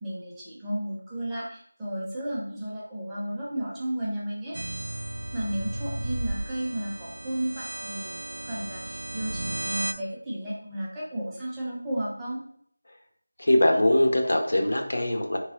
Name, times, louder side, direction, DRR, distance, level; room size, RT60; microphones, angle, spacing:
voice 1, 0.0-4.7 5.3-12.4, right 1 dB, 5° right, -9 dB, 0.5 m, -33 dB
sound 1, 4.5-9.9, right 1 dB, 55° right, 0.3 m, -34 dB
voice 2, 13.4-15.4, left 1 dB, 65° left, 2 dB, 0.7 m, -22 dB
3.4 x 3.1 x 2.8 m, 0.64 s
figure-of-eight pair, 175°, 0 cm